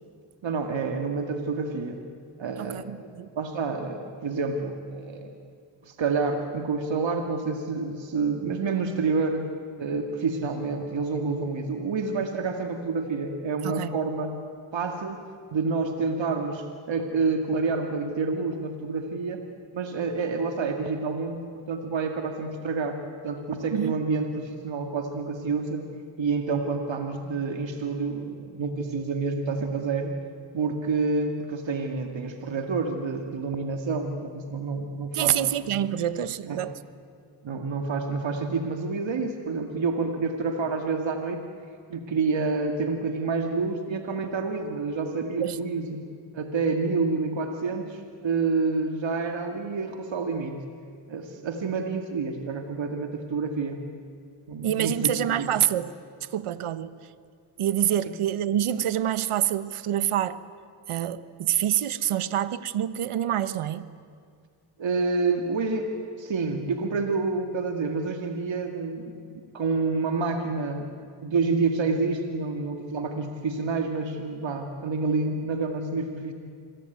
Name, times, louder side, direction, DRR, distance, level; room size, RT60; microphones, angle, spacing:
voice 1, 0.4-2.0 2.4-3.0 3.3-5.3 5.8-9.5 9.8-14.4 14.7-15.2 15.5-19.4 19.7-25.9 26.2-30.1 30.5-35.4 36.4-36.6 37.4-41.4 41.9-46.1 46.3-50.6 51.1-53.9 54.5-55.5 58.1-58.2 64.8-71.0 71.2-76.3, right 4 dB, 60° right, 5 dB, 2.2 m, -28 dB
voice 2, 2.6-3.3 13.6-13.9 23.7-24.0 35.1-36.7 45.4-45.6 54.6-55.9 56.3-56.9 57.6-60.4 60.9-63.9, right 11 dB, 80° right, 15 dB, 1.1 m, -26 dB
26.5 x 22.5 x 9.4 m, 2.2 s
cardioid pair, 65°, 50 cm